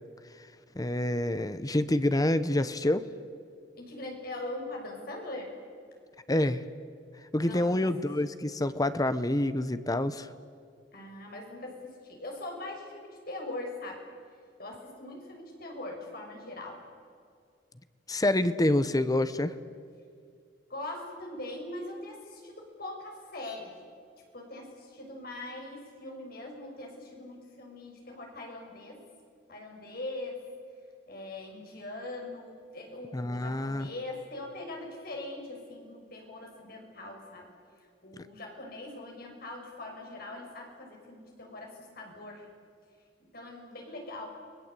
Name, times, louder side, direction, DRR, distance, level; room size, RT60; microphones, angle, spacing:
voice 1, 0.8-3.1 6.3-6.6 7.3-10.3 18.1-19.5 33.1-33.9, left 1 dB, 20° left, 13 dB, 0.9 m, -27 dB
voice 2, 3.7-5.5 7.4-7.9 10.9-14.0 14.6-16.8 20.7-23.7 24.3-29.0 29.5-30.4 31.1-37.5 38.0-42.5 43.3-44.3, left 2 dB, 55° left, 1 dB, 6.3 m, -41 dB
30.0 x 21.0 x 8.4 m, 2.2 s
head